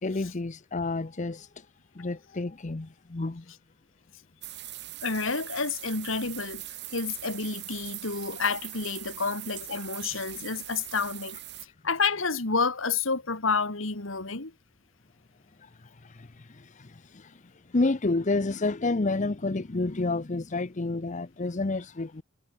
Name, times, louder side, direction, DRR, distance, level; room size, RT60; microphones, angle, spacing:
voice 1, 0.0-1.5 2.0-3.4 15.6-15.7 16.0-17.3 17.7-22.2, left 3 dB, 35° left, 0.7 m, -30 dB
sound 1, 4.4-11.7, right 15 dB, 55° right, 3.6 m, -41 dB
voice 2, 5.0-6.6 6.9-11.4 11.8-14.5, left 4 dB, 70° left, 2.5 m, -29 dB
head